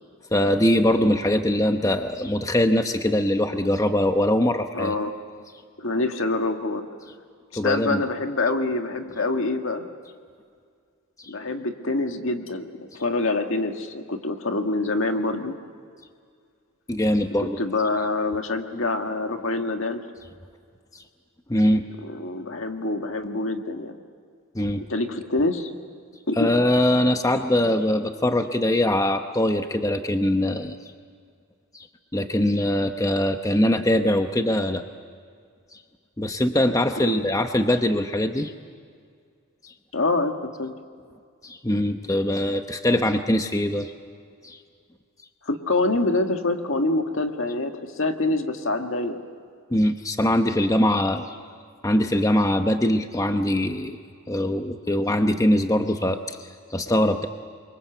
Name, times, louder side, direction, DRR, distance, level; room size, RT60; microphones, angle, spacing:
voice 1, 0.3-4.9 7.5-8.0 11.2-11.3 16.9-17.6 21.5-21.8 24.5-24.8 26.4-30.8 31.7-31.9 32.1-34.8 36.2-38.5 39.6-39.7 41.4-43.9 44.4-44.6 49.7-51.3 51.8-54.0 54.3-57.3, left 1 dB, 15° left, 6 dB, 0.9 m, -22 dB
voice 2, 4.7-5.1 5.8-6.9 7.6-9.9 11.3-15.6 17.4-20.0 22.0-24.0 24.8-25.7 26.3-26.5 37.0-37.2 39.9-40.7 45.4-49.2, left 2 dB, 65° left, 5 dB, 1.9 m, -26 dB
28.0 x 24.0 x 8.1 m, 2.2 s
head